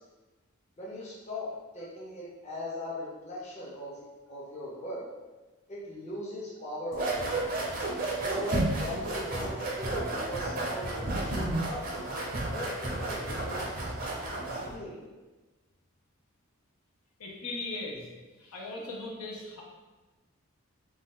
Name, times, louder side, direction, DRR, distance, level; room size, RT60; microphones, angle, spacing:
voice 1, 0.8-4.0 4.3-5.0 5.7-7.5 8.1-11.8 12.5-14.3 14.6-15.1, left 1 dB, 30° left, -5 dB, 0.6 m, -39 dB
sound 1, 6.9-14.7, right 2 dB, 40° right, 0.5 m, -32 dB
voice 2, 17.2-18.1 18.4-19.6, left 2 dB, 85° left, -2 dB, 0.6 m, -38 dB
2.7 x 2.2 x 3.5 m, 1.2 s
head